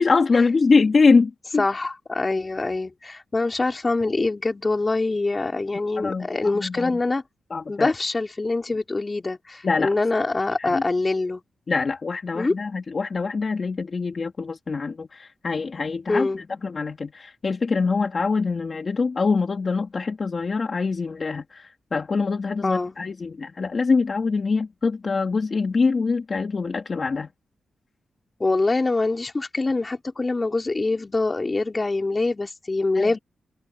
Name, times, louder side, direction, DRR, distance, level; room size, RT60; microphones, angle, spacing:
voice 1, 0.0-1.6 6.0-6.9 7.5-7.9 9.6-9.9 10.6-10.8 11.7-27.3 32.9-33.2, left 4 dB, 45° left, 2.6 m, -24 dB
voice 2, 1.6-7.2 7.7-11.4 12.3-12.6 16.1-16.4 22.6-22.9 28.4-33.2, left 3 dB, 30° left, 3.6 m, -24 dB
cardioid pair, 75°, 0 cm